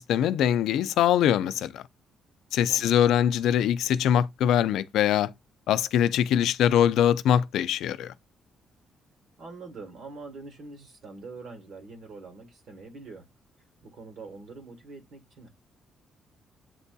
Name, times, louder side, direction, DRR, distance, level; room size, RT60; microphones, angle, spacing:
voice 1, 0.0-1.8 2.5-5.3 5.7-8.1, left 10 dB, 85° left, 0.3 m, -23 dB
voice 2, 2.7-3.1 9.4-13.3 13.8-15.5, right 3 dB, 65° right, 1.2 m, -44 dB
7.9 x 2.7 x 2.2 m
cardioid pair, 90°, 0 cm